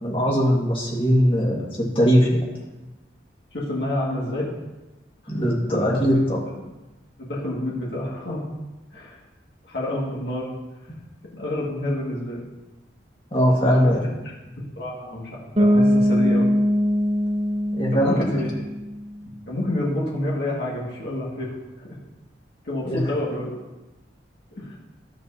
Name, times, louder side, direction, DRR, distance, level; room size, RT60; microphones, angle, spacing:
voice 1, 0.0-2.4 5.3-6.4 13.3-14.0 17.7-18.4 22.8-23.0, equal, 30° left, -3 dB, 1.7 m, -20 dB
voice 2, 3.5-4.5 5.2-5.4 5.7-6.0 6.5-6.6 7.2-8.4 8.9-9.2 9.6-10.5 11.3-12.4 13.6-13.9 14.6-16.5 17.9-18.5 19.5-22.0 22.6-23.5 24.5-24.8, left 1 dB, 60° left, -4 dB, 1.9 m, -28 dB
Bass guitar, 15.6-19.3, equal, 30° right, 0.7 m, -21 dB
11.0 x 7.6 x 2.8 m, 1.1 s
head